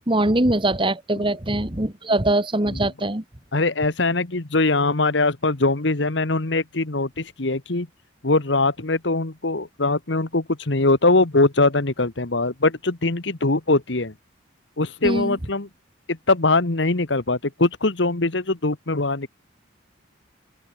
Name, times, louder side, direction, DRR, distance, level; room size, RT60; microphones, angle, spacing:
voice 1, 0.0-3.2 15.0-15.4, right 1 dB, 25° right, 1.9 m, -22 dB
voice 2, 3.5-7.9 8.2-14.1 14.8-15.7 16.1-19.3, left 2 dB, 60° left, 1.5 m, -22 dB
open air
head